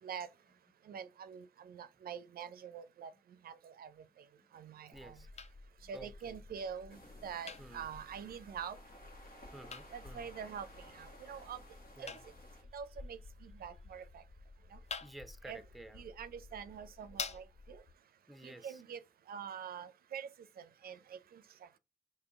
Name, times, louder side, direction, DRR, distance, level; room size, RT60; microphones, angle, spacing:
voice 1, 0.9-3.1 3.4-3.9 4.5-5.2 5.9-8.8 9.9-10.7 10.9-11.6 12.0-12.1 12.7-14.2 14.7-14.8 15.4-15.6 15.9-17.8 18.4-19.0 19.3-20.3 20.6-21.4, right 7 dB, 90° right, 0.4 m, -45 dB
voice 2, 4.5-5.3 5.8-6.4 7.6-7.9 9.5-10.3 11.2-11.4 12.0-12.2 15.0-16.0 18.3-18.8, right 1 dB, ahead, 0.6 m, -53 dB
sound 1, 4.9-17.9, left 4 dB, 45° left, 0.5 m, -50 dB
sound 2, 6.9-12.6, equal, 80° left, 1.4 m, -57 dB
3.7 x 2.7 x 3.4 m
cardioid pair, 55°, 15 cm